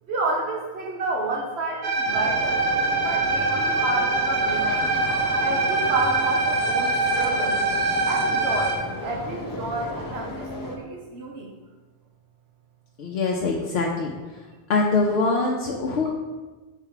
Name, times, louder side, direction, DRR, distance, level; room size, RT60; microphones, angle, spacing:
voice 1, 0.1-2.6 2.9-4.9 5.4-7.6 8.1-11.5, right 2 dB, 85° right, -1 dB, 1.1 m, -30 dB
sound 1, 1.8-8.8, right 3 dB, 55° right, 0.9 m, -24 dB
sound 2, 2.0-10.8, left 1 dB, 25° left, 0.6 m, -34 dB
voice 2, 13.0-14.1 14.7-16.1, left 3 dB, 80° left, -1 dB, 0.9 m, -23 dB
4.6 x 4.5 x 5.7 m, 1.3 s
omnidirectional pair, 1.0 m